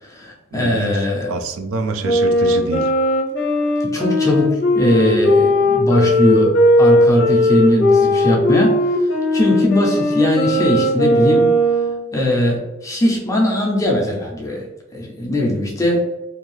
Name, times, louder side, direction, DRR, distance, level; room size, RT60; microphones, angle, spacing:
voice 1, 0.0-1.3 3.9-9.0 9.3-11.5 12.1-14.7 14.9-16.1, left 1 dB, 15° left, -2 dB, 0.4 m, -19 dB
voice 2, 0.5-2.9, right 3 dB, 80° right, 6 dB, 0.4 m, -26 dB
Wind instrument woodwind instrument, 2.0-12.1, left 1 dB, 55° left, 0.6 m, -17 dB
2.6 x 2.3 x 3.1 m, 1.0 s
head